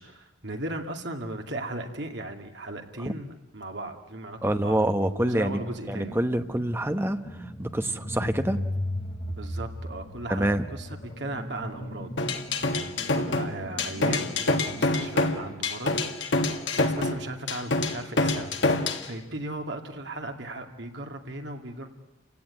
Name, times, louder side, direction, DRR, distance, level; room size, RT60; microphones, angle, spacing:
voice 1, 0.0-6.2 8.2-8.3 9.3-10.9 11.2-12.1 12.7-16.0 16.8-21.9, right 2 dB, 60° right, 4 dB, 2.3 m, -37 dB
voice 2, 4.4-5.6 5.9-8.6 10.3-10.6, right 1 dB, 10° right, 8 dB, 1.0 m, -26 dB
sound 1, 4.5-15.0, left 1 dB, 30° left, 3.6 m, -37 dB
sound 2, 12.2-19.1, left 2 dB, 65° left, 1.8 m, -26 dB
29.0 x 16.5 x 9.7 m, 1.0 s
head